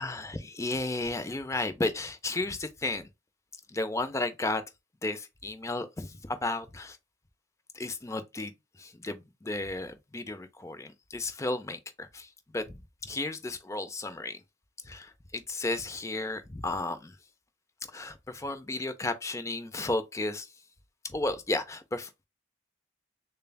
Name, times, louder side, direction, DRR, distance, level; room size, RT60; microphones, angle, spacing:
voice 1, 0.0-3.1 3.7-4.6 5.0-7.0 7.7-8.5 8.8-14.4 14.8-17.1 17.9-20.5 21.0-22.1, left 2 dB, 15° left, 0.4 m, -33 dB
6.7 x 2.3 x 2.2 m
head